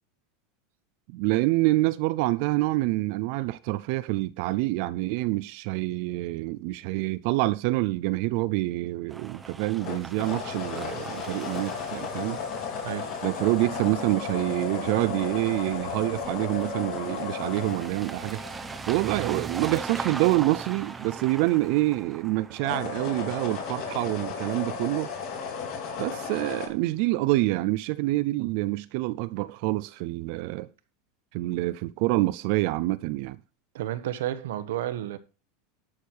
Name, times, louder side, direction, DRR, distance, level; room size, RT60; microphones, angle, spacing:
voice 1, 1.1-12.4 13.2-18.4 18.9-25.1 26.0-30.7 31.3-33.4, right 19 dB, 50° right, 0.5 m, -27 dB
sound 1, 9.1-26.7, right 4 dB, 10° right, 0.8 m, -41 dB
sound 2, 9.8-19.0 22.5-26.7, left 6 dB, 45° left, 3.0 m, -34 dB
voice 2, 12.8-13.1 19.1-19.2 33.7-35.2, right 12 dB, 80° right, 1.2 m, -31 dB
12.0 x 6.6 x 4.6 m
supercardioid pair, 165°, 0 cm